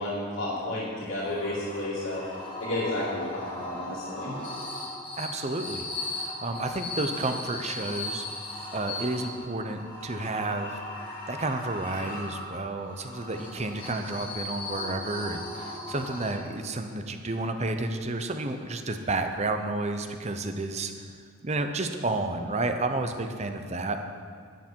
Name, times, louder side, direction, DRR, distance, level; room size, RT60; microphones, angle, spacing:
voice 1, 0.0-2.2 2.6-4.3, left 1 dB, 85° left, -8 dB, 2.6 m, -31 dB
sound 1, 1.0-16.7, left 2 dB, 25° left, 2.1 m, -38 dB
voice 2, 5.2-5.9 6.2-8.3 8.7-10.8 11.3-21.1 21.4-24.0, right 2 dB, 30° right, 7 dB, 0.7 m, -31 dB
13.0 x 9.9 x 4.6 m, 2.1 s
head